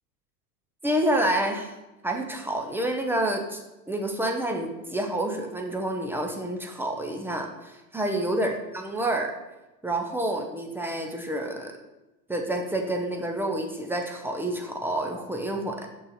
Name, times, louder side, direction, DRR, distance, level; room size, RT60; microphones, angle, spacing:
voice 1, 0.8-1.7 2.0-3.6 3.9-9.3 9.8-11.7 12.3-15.9, right 1 dB, 5° right, 2 dB, 0.5 m, -28 dB
6.4 x 5.4 x 4.2 m, 1.0 s
hypercardioid pair, 115°, 50 cm